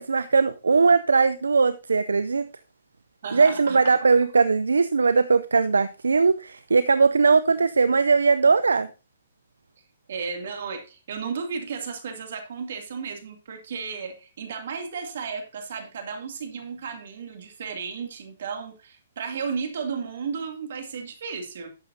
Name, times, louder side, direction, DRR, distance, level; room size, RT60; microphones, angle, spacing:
voice 1, 0.0-2.5 3.3-8.9, right 4 dB, 85° right, 0.4 m, -20 dB
voice 2, 3.2-3.9 10.1-21.7, right 5 dB, 65° right, 2.5 m, -34 dB
11.5 x 7.6 x 2.7 m
hypercardioid pair, 130°, 0 cm